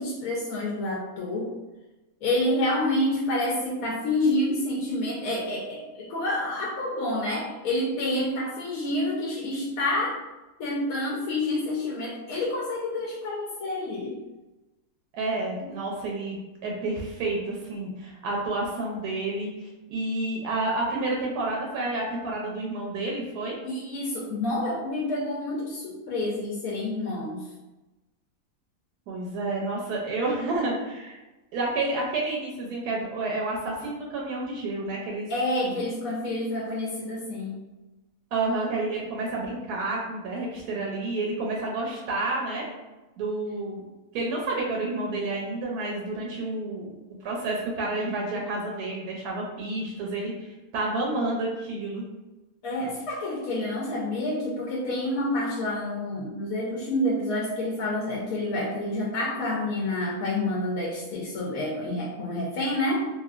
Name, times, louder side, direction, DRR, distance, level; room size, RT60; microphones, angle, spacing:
voice 1, 0.0-1.5 2.2-10.2 10.6-14.2 15.6-15.7 23.6-27.5 35.3-37.7 52.6-63.1, left 1 dB, 70° left, -4 dB, 1.0 m, -28 dB
voice 2, 15.1-23.6 29.1-31.2 31.5-35.3 35.6-35.8 38.3-42.7 43.2-43.8 44.1-47.0 47.2-52.0, right 2 dB, 80° right, -2 dB, 1.1 m, -30 dB
2.9 x 2.4 x 2.4 m, 1.1 s
omnidirectional pair, 1.6 m